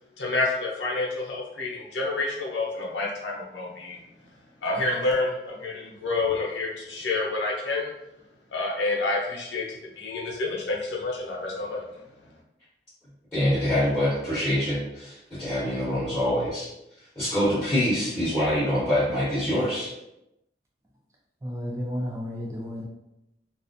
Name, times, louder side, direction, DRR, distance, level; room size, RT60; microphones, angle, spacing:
voice 1, 0.2-4.0 4.6-7.9 8.5-9.6 10.0-11.8, left 3 dB, 90° left, -2 dB, 0.7 m, -28 dB
voice 2, 13.3-16.7 17.1-19.9, equal, 10° left, -14 dB, 1.1 m, -25 dB
voice 3, 21.4-22.8, equal, 15° right, -2 dB, 0.3 m, -32 dB
2.4 x 2.0 x 2.6 m, 0.87 s
head